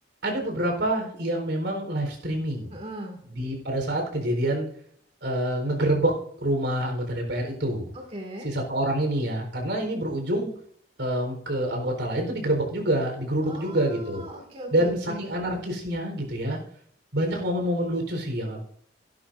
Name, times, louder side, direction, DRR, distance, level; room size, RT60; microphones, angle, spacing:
voice 1, 0.2-2.8 3.3-4.7 5.2-6.1 6.4-7.9 8.4-10.5 11.0-14.2 14.7-16.6 17.1-18.6, right 1 dB, 75° right, 3 dB, 4.2 m, -27 dB
voice 2, 2.7-3.2 7.9-8.5 13.4-15.2, equal, 35° right, 1 dB, 2.3 m, -38 dB
16.5 x 11.5 x 2.6 m, 0.65 s
head